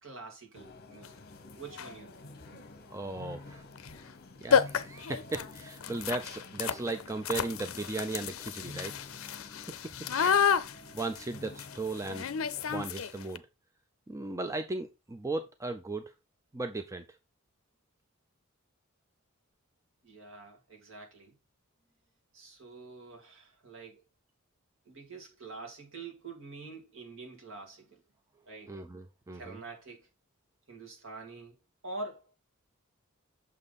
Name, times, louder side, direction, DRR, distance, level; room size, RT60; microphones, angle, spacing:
voice 1, 0.0-1.2 1.6-2.2 2.5-2.6 20.0-21.4 22.3-24.0 24.9-28.0 28.4-28.7 29.3-30.1 30.7-31.5 31.8-32.3, right 3 dB, 65° right, 2.6 m, -46 dB
sound 1, 0.5-12.8, left 2 dB, 50° left, 1.1 m, -49 dB
sound 2, 1.0-1.1 1.7-2.0 3.8-3.9 4.2-4.3 4.5-13.4, left 7 dB, 70° left, 0.5 m, -31 dB
voice 2, 2.9-3.6 4.4-9.0 9.4-9.8 10.2-10.7 10.9-12.3 12.7-13.4 14.1-16.0 16.5-17.0 28.7-29.6, right 3 dB, 15° right, 0.5 m, -37 dB
6.6 x 5.5 x 4.0 m
head